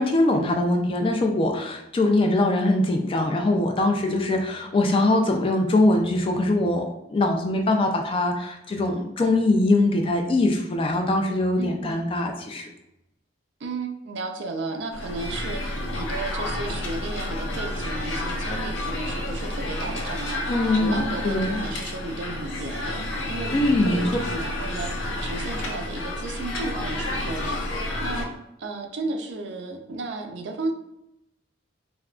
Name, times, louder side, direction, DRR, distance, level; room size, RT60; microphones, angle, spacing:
voice 1, 0.0-12.7 20.5-21.6 23.5-24.0, left 2 dB, 30° left, 3 dB, 0.3 m, -22 dB
voice 2, 11.6-12.0 13.6-24.9 25.2-28.3 28.6-30.7, right 2 dB, 65° right, 3 dB, 0.4 m, -34 dB
sound 1, 14.9-28.3, left 1 dB, 80° left, 0.6 m, -30 dB
3.5 x 2.2 x 2.3 m, 0.85 s
head